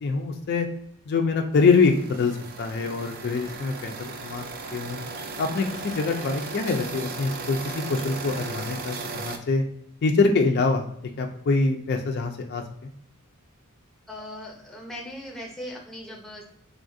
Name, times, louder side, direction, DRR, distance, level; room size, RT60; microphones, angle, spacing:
voice 1, 0.0-0.7 1.1-4.4 4.7-5.0 5.4-9.6 10.0-10.9 11.2-12.9, left 4 dB, 50° left, 4 dB, 0.4 m, -24 dB
sound 1, 1.5-9.4, right 4 dB, 45° right, 0.4 m, -36 dB
voice 2, 14.1-16.4, left 1 dB, ahead, -2 dB, 0.6 m, -39 dB
3.4 x 2.3 x 2.6 m, 0.72 s
head